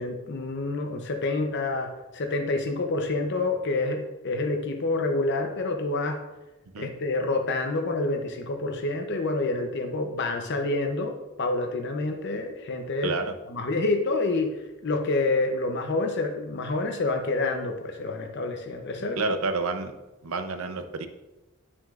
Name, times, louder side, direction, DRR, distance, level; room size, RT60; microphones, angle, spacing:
voice 1, 0.0-6.2 6.8-13.2 13.5-19.2, left 2 dB, 55° left, 4 dB, 0.7 m, -28 dB
voice 2, 13.0-13.3 19.2-19.9 20.2-21.1, right 3 dB, 80° right, 8 dB, 0.6 m, -29 dB
9.5 x 6.0 x 2.5 m, 1.0 s
head